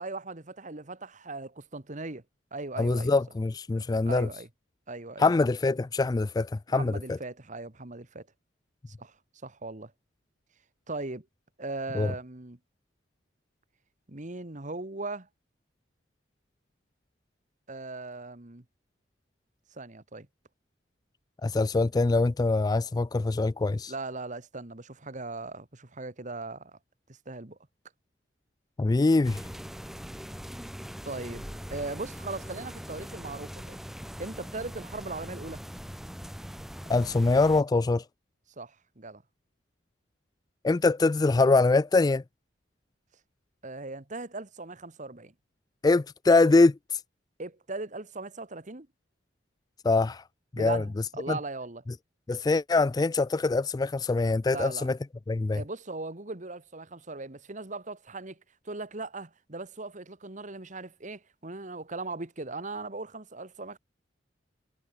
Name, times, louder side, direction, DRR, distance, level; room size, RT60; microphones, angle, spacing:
voice 1, 0.0-2.2 2.5-3.1 4.0-4.5 4.9-5.3 6.7-8.3 8.9-9.1 9.4-9.9 10.9-11.3 11.6-12.6 14.1-15.3 17.7-18.6 19.7-20.3 23.9-26.8 27.1-27.6 31.0-33.8 34.2-35.6 38.6-39.2 43.6-45.3 47.4-48.9 50.6-51.8 54.5-54.9 55.5-58.4 58.6-63.8, right 3 dB, 40° right, 1.7 m, -39 dB
voice 2, 2.8-4.3 5.2-6.9 11.9-12.1 21.4-23.9 28.8-29.4 36.9-38.0 40.6-42.2 45.8-46.7 49.8-50.2 50.6-50.8 51.3-51.4 52.3-55.0 55.3-55.6, left 3 dB, 20° left, 0.3 m, -23 dB
sound 1, 29.2-37.6, equal, ahead, 1.3 m, -41 dB
head